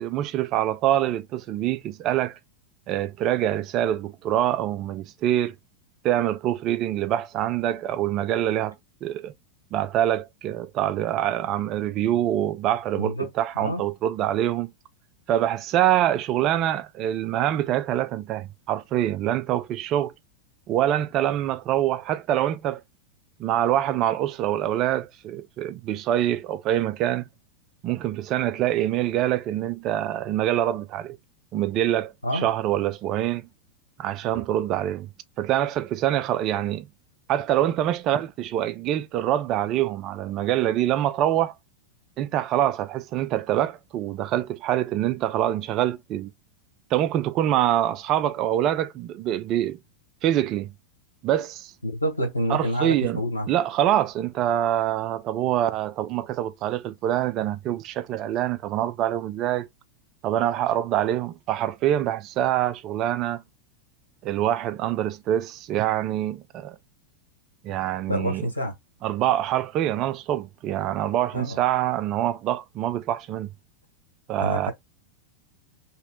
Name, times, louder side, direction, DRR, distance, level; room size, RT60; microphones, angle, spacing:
voice 1, 0.0-2.4 2.9-5.5 6.0-8.8 9.0-9.3 9.7-14.7 15.3-20.1 20.7-22.8 23.4-27.2 27.8-31.2 31.5-33.5 34.0-35.1 35.4-36.9 37.3-41.5 42.2-46.3 46.9-49.8 50.2-50.7 51.2-51.7 52.5-53.2 53.5-59.7 60.2-63.4 64.2-66.8 67.6-68.5 69.0-73.5 74.3-74.7, right 12 dB, 35° right, 0.4 m, -25 dB
voice 2, 13.0-13.3 13.6-13.8 32.2-32.5 34.3-34.4 51.8-53.5 68.1-68.7 71.3-71.6 74.4-74.7, equal, 85° left, 1.3 m, -27 dB
3.0 x 2.8 x 3.6 m
figure-of-eight pair, 90°, 0 cm